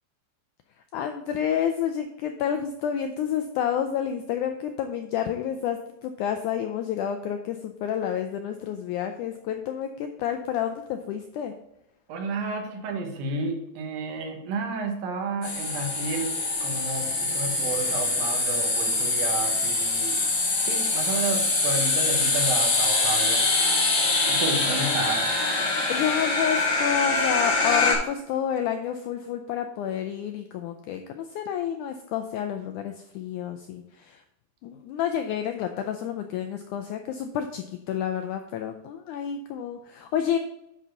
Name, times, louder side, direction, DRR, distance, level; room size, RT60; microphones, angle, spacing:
voice 1, 0.9-11.5 25.9-34.2 34.6-40.4, left 9 dB, 85° left, 6 dB, 1.7 m, -29 dB
voice 2, 12.1-16.4 16.6-20.2 20.6-23.4 24.3-25.3, right 3 dB, 80° right, 3 dB, 2.9 m, -31 dB
sound 1, 15.4-27.9, left 3 dB, 60° left, 4.4 m, -24 dB
10.0 x 4.0 x 5.6 m, 0.84 s
omnidirectional pair, 4.2 m